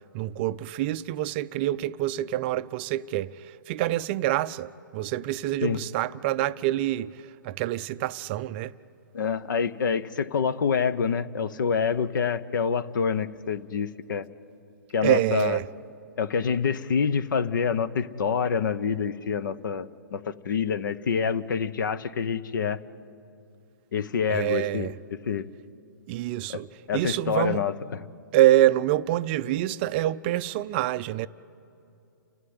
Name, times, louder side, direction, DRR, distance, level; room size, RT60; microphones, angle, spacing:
voice 1, 0.1-8.7 15.0-15.6 24.3-24.9 26.1-26.7 26.9-27.6 28.3-31.3, right 14 dB, 30° right, 0.4 m, -26 dB
voice 2, 9.1-14.3 14.9-15.6 16.2-22.8 23.9-25.5 26.5-26.6 26.9-28.0, left 6 dB, 65° left, 0.9 m, -27 dB
30.0 x 12.5 x 9.6 m
hypercardioid pair, 145°, 11 cm